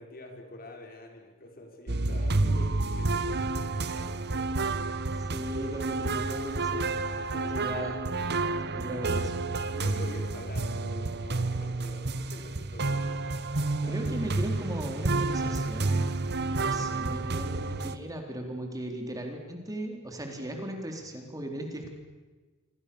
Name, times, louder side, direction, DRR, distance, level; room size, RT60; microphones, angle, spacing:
voice 1, 0.0-4.6 7.1-8.1 9.7-14.3, left 1 dB, 45° left, 3 dB, 5.0 m, -46 dB
sound 1, 1.9-18.0, right 3 dB, 50° right, 1.3 m, -30 dB
voice 2, 5.2-6.9 7.5-8.0 8.7-9.5 13.9-16.0 16.6-21.9, right 1 dB, 15° right, 3 dB, 3.8 m, -37 dB
28.5 x 24.5 x 7.0 m, 1.3 s
head